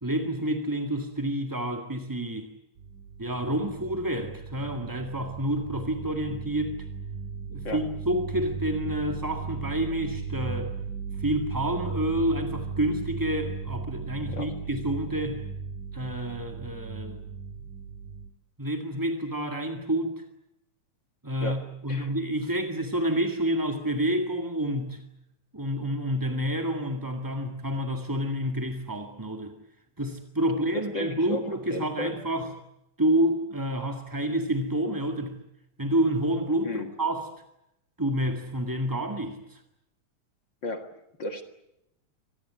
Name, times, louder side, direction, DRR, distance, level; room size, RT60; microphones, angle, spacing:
voice 1, 0.0-2.5 3.2-6.7 7.5-10.7 11.2-15.4 15.9-17.2 17.6-17.7 18.6-20.2 21.2-25.0 25.5-29.5 30.0-32.5 33.0-35.4 35.8-37.3 38.0-39.6, right 1 dB, 10° right, 4 dB, 1.0 m, -29 dB
sound 1, 2.8-18.3, right 5 dB, 90° right, 3.5 m, -36 dB
voice 2, 21.4-22.1 30.7-32.1 36.6-36.9 40.6-40.9 41.2-41.4, left 2 dB, 40° left, 7 dB, 2.0 m, -34 dB
25.5 x 19.0 x 9.7 m, 0.85 s
omnidirectional pair, 3.7 m